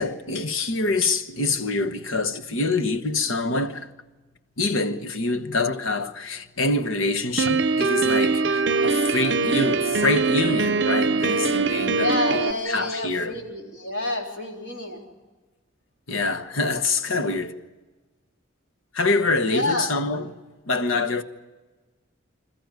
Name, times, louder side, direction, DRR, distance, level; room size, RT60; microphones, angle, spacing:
voice 1, 0.0-3.9 4.6-12.1 12.7-13.4 16.1-17.6 18.9-20.3 20.7-21.2, left 3 dB, 80° left, 1.2 m, -25 dB
Piano, 7.4-12.5, right 4 dB, 55° right, 0.6 m, -22 dB
voice 2, 12.0-15.1 19.4-19.9, left 2 dB, 60° left, 3.8 m, -28 dB
27.0 x 14.5 x 9.4 m
head